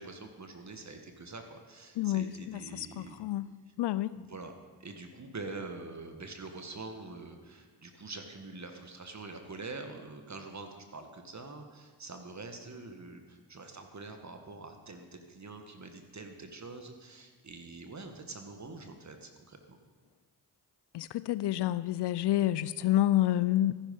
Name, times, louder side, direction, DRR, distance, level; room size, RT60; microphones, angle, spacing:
voice 1, 0.0-3.2 3.7-3.8 4.1-4.5 4.8-19.8, right 3 dB, 40° right, 5 dB, 1.8 m, -45 dB
voice 2, 2.0-3.5 3.8-4.1 20.9-23.7, left 13 dB, 70° left, 16 dB, 0.5 m, -29 dB
14.0 x 10.0 x 5.5 m, 1.5 s
supercardioid pair, 45°, 42 cm